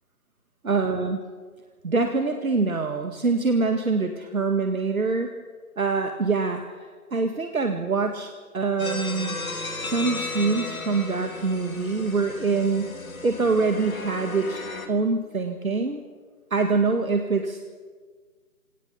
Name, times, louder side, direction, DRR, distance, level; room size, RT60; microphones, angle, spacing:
voice 1, 0.7-1.2 1.8-5.3 5.8-6.6 7.1-8.3 8.5-9.4 9.8-12.9 13.2-14.6 14.9-16.0 16.5-17.6, right 4 dB, 65° right, 5 dB, 2.0 m, -24 dB
sound 1, 8.8-14.9, left 2 dB, 70° left, 2.9 m, -35 dB
24.5 x 18.0 x 7.0 m, 1.5 s
figure-of-eight pair, 170°, 44 cm